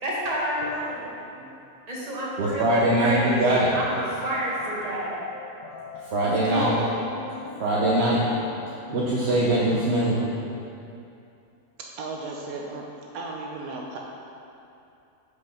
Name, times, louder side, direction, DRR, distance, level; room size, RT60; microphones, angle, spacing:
voice 1, 0.0-1.1 1.9-3.4 3.7-5.2 6.2-6.9, equal, 25° right, -6 dB, 1.5 m, -29 dB
voice 2, 2.4-3.7 6.1-6.7 7.6-8.2 8.9-10.2, right 1 dB, 50° right, -6 dB, 1.0 m, -22 dB
sound 1, 3.5-10.6, left 5 dB, 85° left, 1.3 m, -42 dB
voice 3, 6.8-7.3 11.8-12.9 13.1-14.0, right 3 dB, 75° right, -1 dB, 1.2 m, -36 dB
6.3 x 5.2 x 5.6 m, 2.7 s
omnidirectional pair, 1.6 m